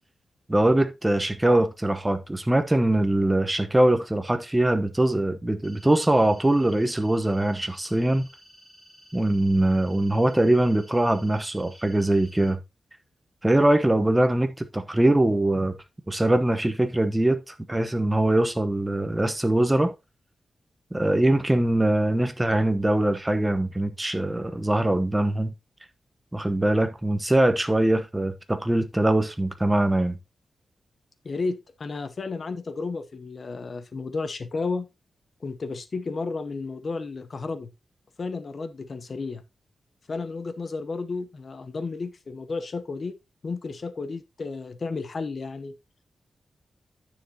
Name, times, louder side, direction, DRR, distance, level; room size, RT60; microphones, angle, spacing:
voice 1, 0.5-8.3 9.1-12.6 13.4-15.7 16.1-19.9 20.9-25.5 26.3-30.2, right 1 dB, 10° right, 0.9 m, -22 dB
sound 1, 5.6-12.5, equal, 20° left, 5.0 m, -53 dB
voice 2, 31.2-34.9 35.4-37.7 38.2-39.4 40.1-43.2 43.4-45.8, left 4 dB, 45° left, 0.8 m, -32 dB
9.8 x 6.9 x 2.8 m
wide cardioid pair, 145°, 0 cm